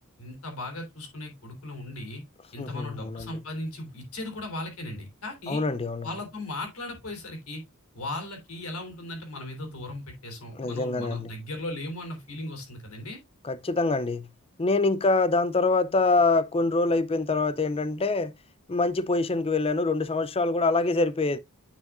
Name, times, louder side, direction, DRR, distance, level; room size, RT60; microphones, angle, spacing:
voice 1, 0.2-2.2 2.5-5.6 6.0-7.6 7.9-13.2, left 1 dB, 70° left, 3.4 m, -37 dB
voice 2, 2.6-3.4 5.5-6.1 10.6-11.3 13.4-14.3 14.6-18.3 18.7-21.4, left 3 dB, 25° left, 0.5 m, -25 dB
9.4 x 5.6 x 2.5 m
head